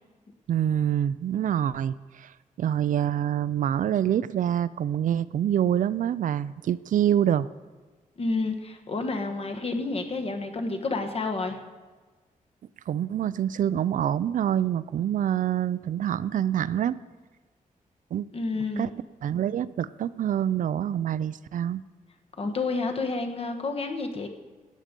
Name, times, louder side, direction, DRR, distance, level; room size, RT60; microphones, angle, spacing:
voice 1, 0.5-2.3 2.6-7.5 12.9-17.0 18.1-18.3 18.8-18.9 19.2-21.8, right 10 dB, 70° right, 17 dB, 0.4 m, -26 dB
voice 2, 8.2-11.6 18.3-18.9 22.4-24.3, left 3 dB, 45° left, 5 dB, 1.2 m, -29 dB
17.0 x 7.6 x 5.2 m, 1.3 s
wide cardioid pair, 155°, 14 cm